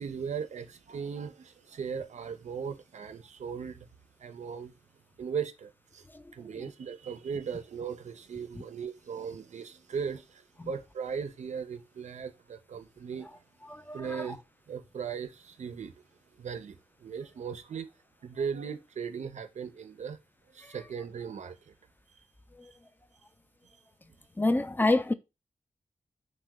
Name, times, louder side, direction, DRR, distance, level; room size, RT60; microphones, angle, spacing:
voice 1, 0.0-3.9 4.2-4.7 5.2-6.0 6.3-13.4 13.9-14.4 14.7-16.0 16.4-17.9 18.2-20.2 20.5-21.7 22.6-22.7, right 6 dB, 70° right, 0.4 m, -38 dB
voice 2, 13.7-14.3 24.4-25.1, left 2 dB, 15° left, 0.3 m, -27 dB
2.8 x 2.1 x 3.4 m
cardioid pair, 50°, 13 cm